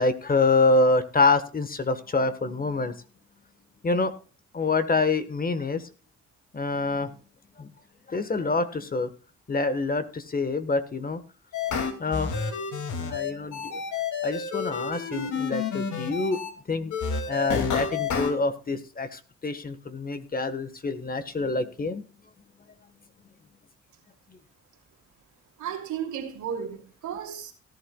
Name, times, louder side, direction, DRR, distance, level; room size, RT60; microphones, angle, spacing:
voice 1, 0.0-3.0 3.8-4.1 4.5-5.9 6.5-7.1 7.6-7.7 8.1-9.1 9.5-11.2 12.0-12.4 13.0-13.8 14.2-16.4 16.7-16.9 17.3-22.0, left 3 dB, 30° left, 1.4 m, -26 dB
sound 1, 11.5-16.5 16.9-18.3, left 5 dB, 75° left, 2.5 m, -30 dB
voice 2, 25.6-27.5, right 8 dB, 80° right, 2.9 m, -34 dB
17.5 x 11.5 x 2.3 m
cardioid pair, 90°, 30 cm